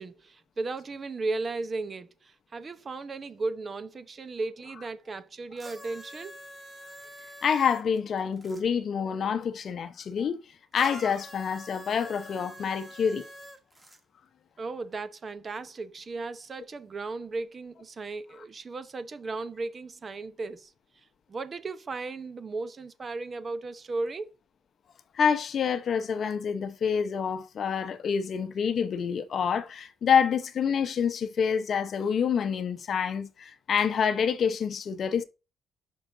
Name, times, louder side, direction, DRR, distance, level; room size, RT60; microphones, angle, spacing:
voice 1, 0.0-6.4 14.6-20.7 21.3-24.3, right 3 dB, 35° right, 0.7 m, -35 dB
sound 1, 5.6-8.6 10.7-14.0 14.9-15.0, equal, 15° right, 1.4 m, -46 dB
voice 2, 7.4-10.4 10.7-13.3 25.1-35.2, left 7 dB, 50° left, 0.7 m, -27 dB
6.4 x 5.5 x 3.8 m
cardioid pair, 120°, 0 cm